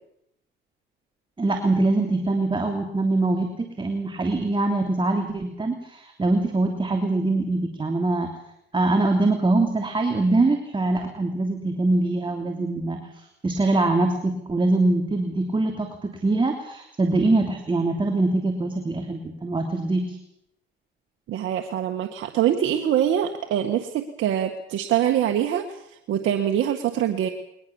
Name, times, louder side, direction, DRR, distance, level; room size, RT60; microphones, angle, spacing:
voice 1, 1.4-8.3 8.7-20.2, right 2 dB, 25° right, 3 dB, 3.1 m, -23 dB
voice 2, 21.3-25.8 26.1-27.3, right 10 dB, 80° right, 4 dB, 1.7 m, -24 dB
22.0 x 20.5 x 7.2 m, 0.77 s
cardioid pair, 90°, 20 cm